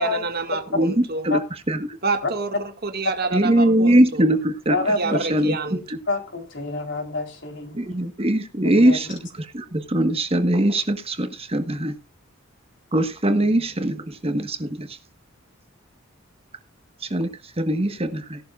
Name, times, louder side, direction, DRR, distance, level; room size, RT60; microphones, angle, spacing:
voice 1, 0.0-1.3 2.0-4.4 5.0-5.8, right 3 dB, 50° right, 2.0 m, -28 dB
voice 2, 0.7-1.4 1.7-2.0 3.3-4.7 5.3-5.6 7.7-9.2 9.5-11.9 12.9-14.9 17.1-17.3 17.6-18.4, right 1 dB, 30° right, 1.4 m, -21 dB
voice 3, 4.7-5.2 6.1-7.9 8.6-9.1, left 2 dB, 60° left, 3.9 m, -27 dB
17.0 x 12.0 x 2.5 m
head